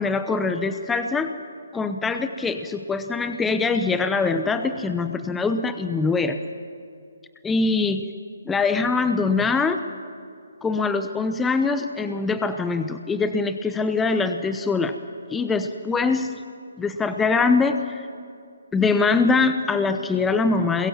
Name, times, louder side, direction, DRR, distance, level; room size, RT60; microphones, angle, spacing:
voice 1, 0.0-1.3 1.7-6.4 7.4-8.1 8.5-9.8 10.6-15.0 15.3-16.4 16.8-18.1 18.7-20.9, left 4 dB, 10° left, 9 dB, 0.8 m, -23 dB
28.5 x 21.5 x 7.3 m, 2.4 s
figure-of-eight pair, 140°, 0 cm